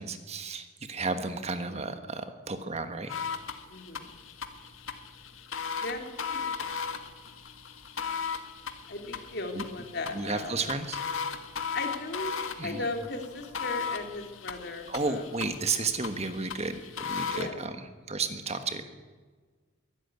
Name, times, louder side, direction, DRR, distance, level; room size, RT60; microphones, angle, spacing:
voice 1, 0.0-3.1 9.5-9.6 10.1-11.0 12.6-12.8 14.9-17.8 18.1-18.9, right 3 dB, 30° right, 8 dB, 1.4 m, -33 dB
sound 1, 3.1-17.5, left 6 dB, 75° left, 1.8 m, -37 dB
voice 2, 3.7-4.1 5.8-6.7 8.9-10.5 11.7-12.4 12.6-15.2 17.3-17.7, left 2 dB, 50° left, 5 dB, 2.9 m, -37 dB
23.0 x 12.5 x 9.5 m, 1.4 s
head